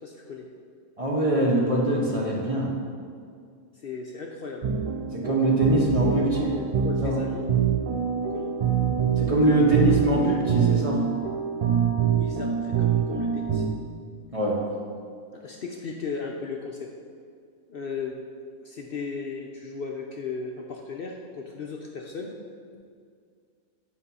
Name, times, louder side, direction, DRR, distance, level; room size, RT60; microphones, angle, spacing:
voice 1, 0.0-0.5 3.7-4.6 5.9-7.5 8.3-8.5 12.1-13.6 15.3-16.9 17.7-18.2 18.6-22.3, left 5 dB, 55° left, 0 dB, 0.7 m, -36 dB
voice 2, 1.0-2.7 5.1-6.3 7.0-7.1 9.2-11.0 14.3-14.6, right 1 dB, 30° right, -3 dB, 1.0 m, -23 dB
sound 1, 4.6-13.7, right 7 dB, 65° right, 0.3 m, -25 dB
8.5 x 4.3 x 5.5 m, 2.2 s
omnidirectional pair, 1.3 m